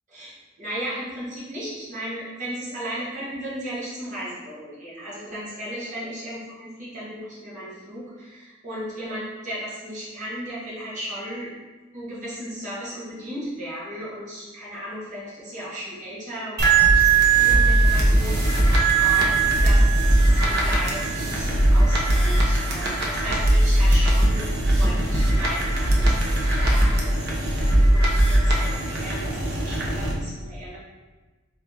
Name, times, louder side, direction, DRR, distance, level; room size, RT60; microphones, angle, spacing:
voice 1, 0.6-11.5 11.9-27.6 27.9-30.8, equal, 40° right, -9 dB, 1.1 m, -35 dB
sound 1, 16.6-30.1, right 2 dB, 55° right, 0.7 m, -19 dB
3.6 x 2.9 x 3.5 m, 1.3 s
head